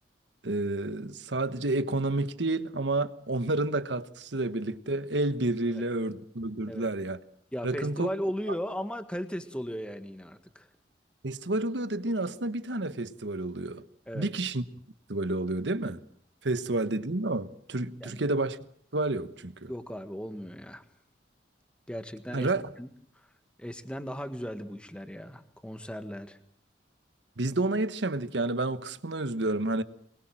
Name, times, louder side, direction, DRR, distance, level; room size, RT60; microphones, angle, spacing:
voice 1, 0.4-7.2 7.6-8.1 11.2-13.8 14.1-14.6 15.1-16.0 16.4-18.6 18.9-19.7 22.3-22.6 27.4-29.8, right 2 dB, 80° right, 1.2 m, -30 dB
voice 2, 7.5-10.7 14.1-14.3 18.0-18.2 19.7-20.8 21.9-22.5 22.8-22.9 23.6-26.4, equal, 5° left, 1.6 m, -36 dB
24.0 x 22.0 x 7.6 m
head